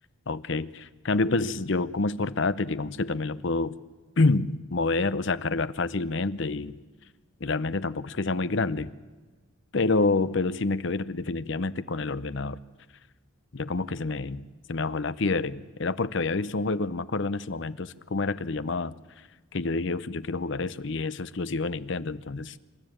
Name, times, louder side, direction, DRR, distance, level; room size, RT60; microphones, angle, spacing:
voice 1, 0.3-3.7 4.2-6.8 7.4-8.9 9.7-12.6 13.5-18.9 19.5-22.5, left 3 dB, 55° left, 15 dB, 0.7 m, -28 dB
27.0 x 13.0 x 8.8 m, 1.3 s
head